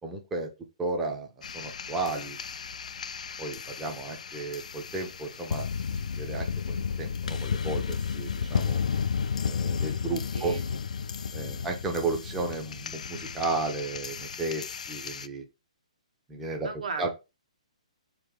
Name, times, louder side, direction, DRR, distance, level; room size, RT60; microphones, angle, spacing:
voice 1, 0.0-0.5 0.8-1.3 1.5-2.4 3.4-5.7 6.1-8.8 9.4-10.5 11.3-15.4 16.3-17.1, right 3 dB, 5° right, 0.5 m, -33 dB
sound 1, 1.4-15.3, left 6 dB, 75° left, 0.4 m, -33 dB
voice 2, 10.3-10.8 11.3-11.7 16.6-17.1, right 5 dB, 85° right, 1.4 m, -37 dB
4.5 x 3.0 x 3.5 m
hypercardioid pair, 170°, 4 cm